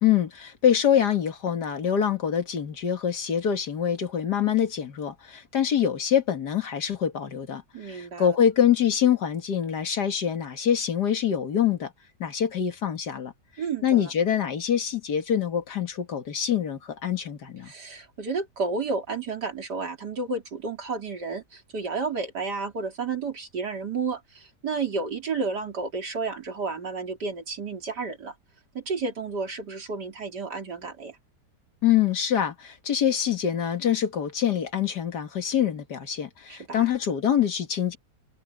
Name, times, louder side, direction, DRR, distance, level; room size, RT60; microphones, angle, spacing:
voice 1, 0.0-7.6 7.9-11.9 12.2-13.3 13.8-17.7 31.8-38.0, left 9 dB, 80° left, 2.4 m, -25 dB
voice 2, 7.7-8.4 13.6-14.1 17.7-28.3 28.7-31.2 36.5-36.9, right 4 dB, 90° right, 3.9 m, -31 dB
omnidirectional pair, 1.7 m